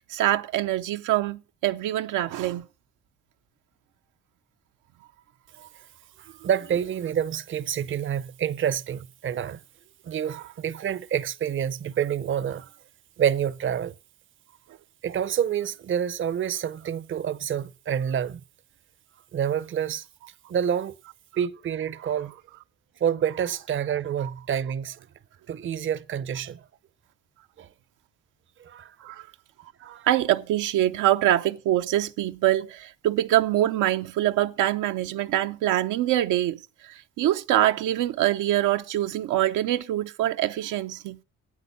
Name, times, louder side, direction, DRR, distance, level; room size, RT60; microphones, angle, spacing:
voice 1, 0.1-2.6 10.3-10.4 24.2-24.3 29.0-29.3 30.1-41.2, right 13 dB, 90° right, 0.7 m, -24 dB
voice 2, 6.2-9.6 10.0-12.7 13.2-13.9 15.0-18.4 19.3-20.0 20.5-21.0 21.4-22.3 23.0-25.0 25.5-26.6 27.6-27.7 28.6-28.9 29.8-30.1, right 9 dB, 40° right, 0.6 m, -28 dB
8.4 x 8.3 x 6.9 m
cardioid pair, 90°, 30 cm